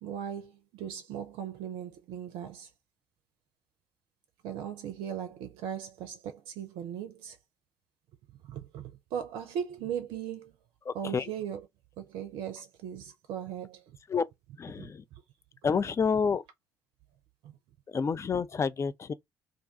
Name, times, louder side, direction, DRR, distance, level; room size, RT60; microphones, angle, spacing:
voice 1, 0.0-2.7 4.4-7.4 8.4-10.5 10.9-11.7 12.0-14.0 14.8-14.9 17.4-17.6, right 9 dB, 60° right, 0.5 m, -38 dB
voice 2, 10.9-11.3 14.1-14.2 14.6-15.0 15.6-16.4 17.9-19.1, left 5 dB, 30° left, 0.4 m, -29 dB
2.5 x 2.2 x 3.6 m
figure-of-eight pair, 45°, 10 cm